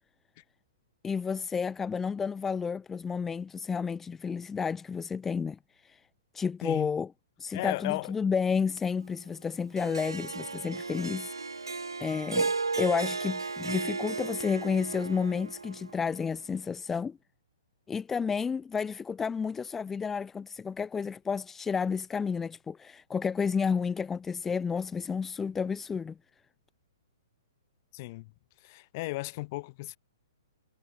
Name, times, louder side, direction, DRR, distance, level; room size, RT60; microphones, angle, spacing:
voice 1, 1.0-6.0 6.3-7.1 7.4-17.2 17.9-26.2, left 6 dB, 10° left, 2.4 m, -31 dB
voice 2, 6.6-6.9 7.5-8.1 27.9-28.3 28.6-30.0, left 21 dB, 40° left, 6.6 m, -35 dB
Harp, 9.8-16.1, right 4 dB, 80° right, 0.8 m, -34 dB
figure-of-eight pair, 115°, 2 cm